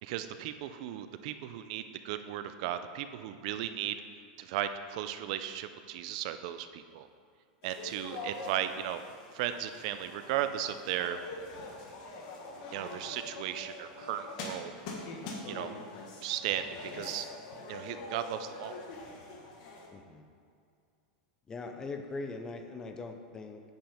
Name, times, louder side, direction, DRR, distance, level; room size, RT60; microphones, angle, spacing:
voice 1, 0.0-4.0 4.4-7.1 7.6-9.0 9.3-11.2 12.7-14.7 15.5-15.7 16.2-16.6 16.9-17.3 17.7-18.8, right 11 dB, 50° right, 10 dB, 0.4 m, -36 dB
sound 1, 7.6-19.9, left 2 dB, 50° left, 1.4 m, -44 dB
voice 2, 19.9-20.2 21.5-23.6, left 3 dB, 15° left, 6 dB, 0.5 m, -41 dB
9.0 x 5.2 x 5.0 m, 2.3 s
supercardioid pair, 160°, 5 cm